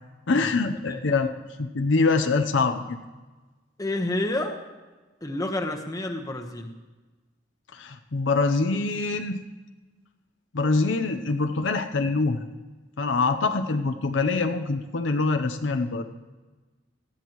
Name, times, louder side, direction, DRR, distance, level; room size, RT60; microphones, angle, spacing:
voice 1, 0.3-1.3 1.6-3.0 7.7-9.4 10.5-12.5 13.0-16.0, left 3 dB, 80° left, 7 dB, 0.7 m, -24 dB
voice 2, 3.8-4.6 5.2-6.7, left 1 dB, 20° left, 2 dB, 1.1 m, -29 dB
18.5 x 13.5 x 3.1 m, 1.3 s
head